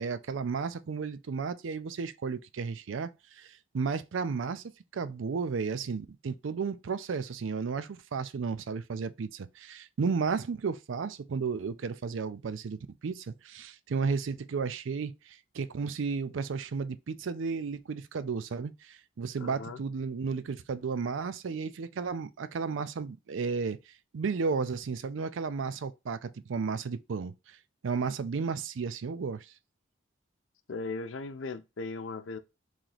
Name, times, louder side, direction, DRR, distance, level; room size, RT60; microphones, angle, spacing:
voice 1, 0.0-27.6 27.8-29.5, right 5 dB, 80° right, 0.4 m, -33 dB
voice 2, 19.4-19.8 30.7-32.4, left 3 dB, 85° left, 0.5 m, -37 dB
3.2 x 2.9 x 3.9 m
head